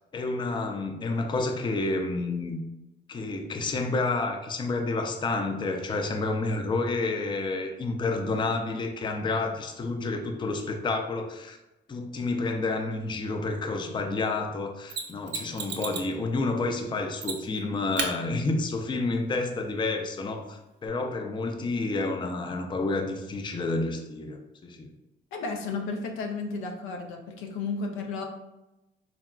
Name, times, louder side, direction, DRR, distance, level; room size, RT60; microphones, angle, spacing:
voice 1, 0.1-2.6 3.1-11.6 11.9-24.9, left 3 dB, 25° left, 5 dB, 0.4 m, -29 dB
Mechanisms, 14.9-16.1 17.2-17.6 18.0-18.1 20.9-21.0, right 5 dB, 60° right, 0.6 m, -33 dB
voice 2, 25.3-28.2, left 4 dB, 90° left, 3 dB, 0.5 m, -33 dB
3.7 x 2.2 x 2.2 m, 0.98 s
cardioid pair, 90°, 20 cm